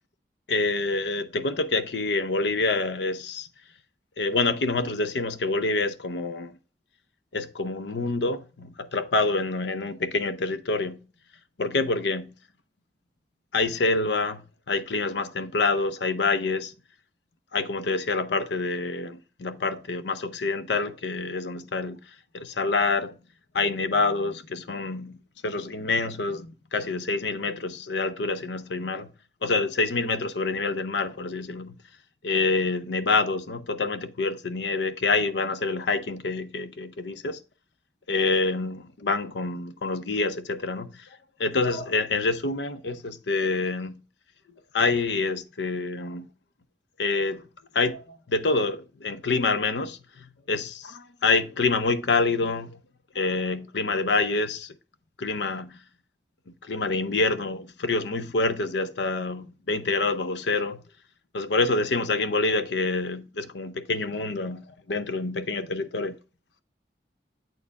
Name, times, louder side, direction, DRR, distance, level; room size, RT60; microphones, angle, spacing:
voice 1, 0.5-3.5 4.2-6.5 7.3-11.0 11.6-12.3 13.5-16.7 17.5-22.0 22.3-23.2 23.5-25.2 25.4-29.1 29.4-31.7 32.2-37.4 38.1-41.1 41.4-44.0 44.7-46.3 47.0-47.4 47.7-52.8 53.1-54.7 55.2-55.8 56.6-60.8 61.3-66.1, left 3 dB, 85° left, 0.6 m, -27 dB
8.1 x 4.4 x 3.5 m
head